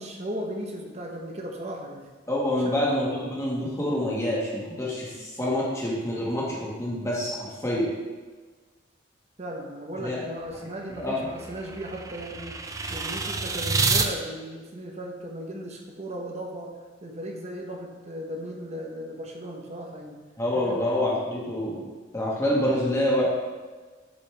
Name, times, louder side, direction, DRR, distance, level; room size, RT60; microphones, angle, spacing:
voice 1, 0.0-2.1 2.6-2.8 5.1-5.3 9.4-20.2 20.6-20.8, equal, 35° right, 1 dB, 0.9 m, -36 dB
voice 2, 2.3-7.9 10.0-10.2 10.9-11.3 20.4-21.9 22.1-23.3, left 1 dB, 15° left, -5 dB, 1.5 m, -27 dB
sound 1, 10.5-14.1, right 4 dB, 15° right, 0.4 m, -29 dB
8.0 x 5.3 x 3.3 m, 1.4 s
head